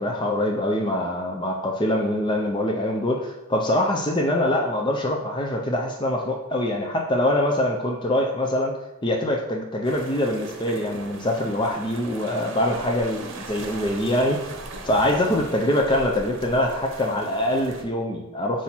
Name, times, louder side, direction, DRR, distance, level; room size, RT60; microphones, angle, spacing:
voice 1, 0.0-8.7 9.0-14.5 14.8-18.6, left 1 dB, 20° left, 1 dB, 0.5 m, -24 dB
sound 1, 9.8-17.8, right 2 dB, 65° right, 0.9 m, -39 dB
5.6 x 4.8 x 4.4 m, 0.96 s
head